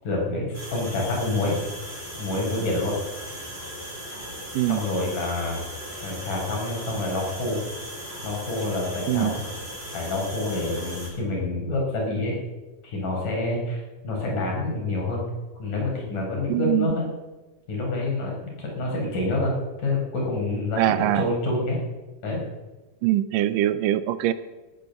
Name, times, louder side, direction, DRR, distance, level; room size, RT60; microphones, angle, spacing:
voice 1, 0.0-1.6 2.2-3.0 4.6-5.6 6.0-7.6 8.2-9.4 9.9-12.4 12.8-15.2 15.6-17.1 17.7-21.8 22.2-22.4, left 2 dB, 70° left, -1 dB, 6.4 m, -27 dB
sound 1, 0.5-11.1, equal, 15° right, 4.8 m, -37 dB
voice 2, 16.5-17.0 20.8-21.3 23.0-24.3, right 14 dB, 90° right, 14 dB, 2.4 m, -23 dB
18.5 x 10.5 x 6.8 m, 1.2 s
omnidirectional pair, 3.8 m